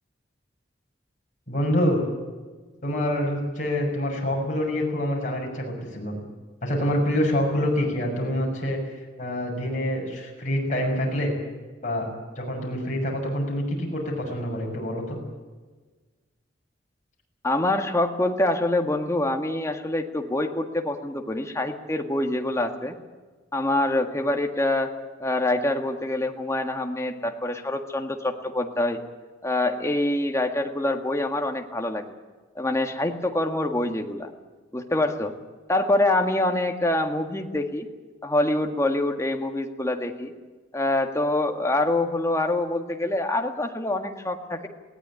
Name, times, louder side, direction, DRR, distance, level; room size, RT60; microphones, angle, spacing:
voice 1, 1.5-2.0 2.8-6.1 6.6-8.8 9.2-11.3 11.8-12.1 12.4-15.2, left 1 dB, 40° left, -1 dB, 6.6 m, -26 dB
voice 2, 17.4-23.0 23.5-24.9 25.2-29.0 29.4-32.2 32.6-34.3 34.7-35.3 35.7-37.9 38.2-40.3 40.7-44.7, left 1 dB, 15° left, 4 dB, 1.7 m, -25 dB
20.5 x 17.5 x 10.0 m, 1.4 s
head